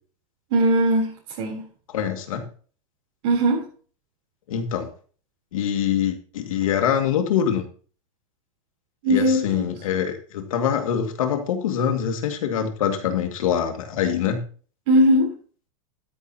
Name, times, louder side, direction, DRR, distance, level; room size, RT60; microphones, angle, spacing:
voice 1, 0.5-1.6 3.2-3.6 9.0-9.6 14.9-15.3, right 1 dB, 55° right, -3 dB, 3.7 m, -19 dB
voice 2, 1.9-2.5 4.5-4.9 5.5-7.6 9.1-14.4, left 8 dB, 90° left, 6 dB, 2.2 m, -24 dB
12.5 x 11.0 x 2.9 m, 0.41 s
supercardioid pair, 160°, 17 cm